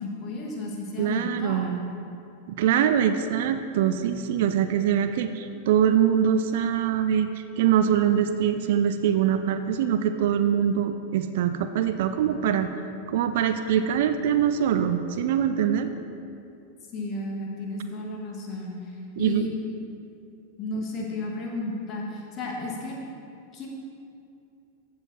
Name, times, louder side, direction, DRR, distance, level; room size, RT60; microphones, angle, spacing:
voice 1, 0.0-1.8 16.9-18.7 19.2-19.6 20.6-23.0 23.5-23.7, left 2 dB, 30° left, -1 dB, 1.6 m, -33 dB
voice 2, 1.0-1.9 2.6-12.7 13.1-15.9 19.2-19.5, right 9 dB, 55° right, 9 dB, 0.4 m, -23 dB
14.5 x 4.8 x 4.1 m, 2.6 s
figure-of-eight pair, 90°, 0 cm